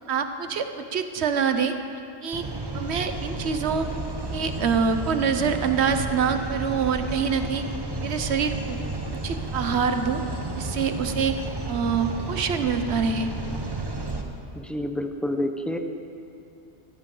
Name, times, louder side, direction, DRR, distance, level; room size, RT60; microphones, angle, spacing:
voice 1, 0.1-1.8 2.2-2.4 2.7-3.9 4.3-7.6 8.0-8.8 9.2-10.2 10.5-11.3 11.7-13.3, right 6 dB, 70° right, 8 dB, 1.0 m, -25 dB
sound 1, 2.3-14.2, right 2 dB, 25° right, 0.9 m, -32 dB
voice 2, 14.5-15.8, left 1 dB, ahead, 5 dB, 0.6 m, -28 dB
16.0 x 14.5 x 3.8 m, 2.6 s
omnidirectional pair, 1.2 m